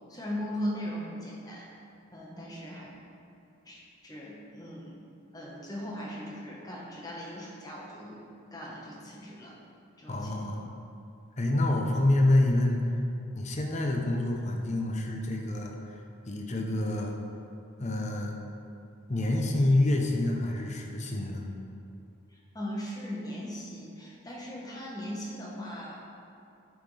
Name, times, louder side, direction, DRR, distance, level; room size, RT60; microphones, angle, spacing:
voice 1, 0.1-1.7 2.1-2.9 3.6-4.9 5.3-8.2 8.5-9.5 10.0-10.6 22.5-26.0, equal, 15° left, -4 dB, 1.2 m, -38 dB
voice 2, 10.1-10.7 11.4-12.8 13.3-16.0 16.3-17.2 17.8-18.4 19.1-21.5, left 1 dB, 35° left, 1 dB, 0.7 m, -27 dB
9.3 x 6.1 x 3.3 m, 2.5 s
head